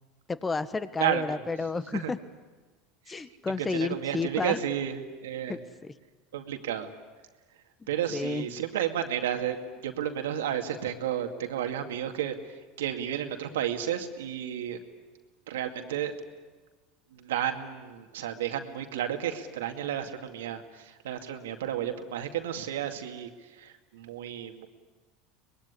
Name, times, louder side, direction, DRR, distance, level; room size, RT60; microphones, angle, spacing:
voice 1, 0.3-2.2 3.1-4.6 5.5-5.9 7.8-8.5, left 4 dB, 20° left, 13 dB, 1.5 m, -31 dB
voice 2, 1.0-1.4 1.9-2.1 3.1-3.2 3.6-5.6 6.3-6.9 7.9-9.6 9.8-12.4 12.8-14.8 15.5-16.1 17.1-24.7, right 10 dB, 85° right, 5 dB, 2.3 m, -32 dB
24.5 x 21.0 x 9.9 m, 1.3 s
hypercardioid pair, 95°, 0 cm